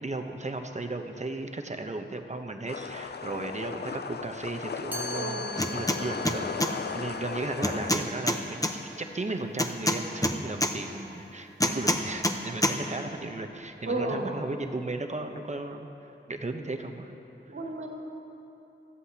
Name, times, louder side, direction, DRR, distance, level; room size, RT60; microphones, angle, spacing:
voice 1, 0.0-17.1, right 2 dB, 35° right, 4 dB, 0.9 m, -35 dB
sound 1, 2.7-7.9, left 6 dB, 55° left, 0.4 m, -36 dB
Chime, 4.9-10.8, left 1 dB, 10° right, 1.1 m, -44 dB
voice 2, 5.1-5.7 13.9-14.3 17.5-17.9, right 2 dB, 75° right, -1 dB, 1.9 m, -33 dB
sound 2, 5.6-6.0 6.3-6.7 7.6-8.7 9.6-10.7 11.6-12.4 12.6-12.8, left 1 dB, 15° left, 0.9 m, -25 dB
19.5 x 14.0 x 2.9 m, 2.9 s
wide cardioid pair, 70°, 20 cm